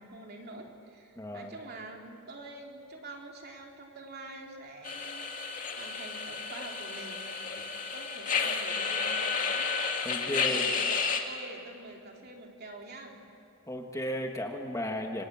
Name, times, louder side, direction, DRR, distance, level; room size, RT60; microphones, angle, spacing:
voice 1, 0.0-5.2 5.8-9.7 10.0-13.2, right 2 dB, 45° right, 1 dB, 3.4 m, -46 dB
voice 2, 1.2-1.5 10.0-10.7 13.7-15.2, equal, 15° left, 3 dB, 1.5 m, -34 dB
sound 1, 4.8-11.2, left 5 dB, 35° left, 2.2 m, -31 dB
27.5 x 24.5 x 8.8 m, 2.5 s
head